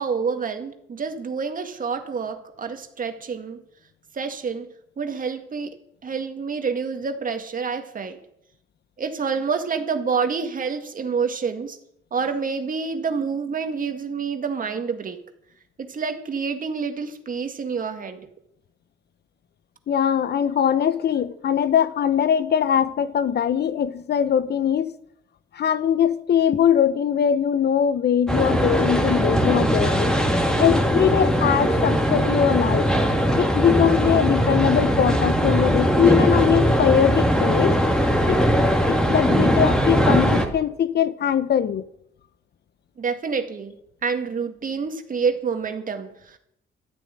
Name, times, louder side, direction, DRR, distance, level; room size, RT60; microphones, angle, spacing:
voice 1, 0.0-3.6 4.1-5.7 6.0-8.2 9.0-11.8 12.1-15.2 15.8-18.3 33.1-33.2 43.0-43.7 44.0-46.4, right 5 dB, 45° right, 2.0 m, -28 dB
voice 2, 19.9-24.9 25.5-30.2 30.6-32.9 33.4-37.8 38.3-38.4 38.9-41.8, left 9 dB, 55° left, 0.9 m, -21 dB
sound 1, 28.3-40.4, equal, 5° left, 2.6 m, -20 dB
13.5 x 9.2 x 8.9 m
cardioid pair, 90°, 20 cm